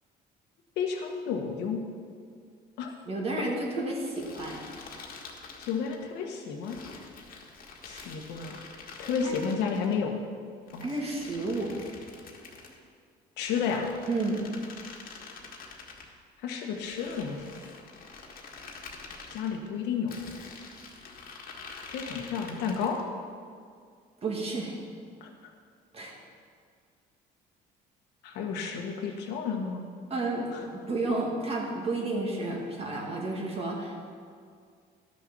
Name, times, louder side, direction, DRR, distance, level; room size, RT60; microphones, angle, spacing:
voice 1, 0.8-1.8 2.8-2.9 5.6-6.8 7.8-8.6 9.0-10.1 10.7-10.9 13.4-13.9 16.4-17.5 19.3-20.3 21.9-23.0 25.2-25.3 28.2-29.8 30.5-30.6, left 6 dB, 85° left, 2 dB, 1.5 m, -31 dB
voice 2, 3.1-4.6 7.9-8.1 9.2-9.3 10.8-11.7 14.1-14.4 24.2-24.7 25.9-26.2 30.1-34.0, right 2 dB, 35° right, -1 dB, 2.2 m, -31 dB
sound 1, 4.1-6.0 6.6-9.9 10.7-12.8 13.4-16.1 16.8-19.5 20.1-23.1, left 4 dB, 55° left, 1.7 m, -46 dB
11.5 x 6.6 x 6.2 m, 2.2 s
cardioid pair, 110°, 17 cm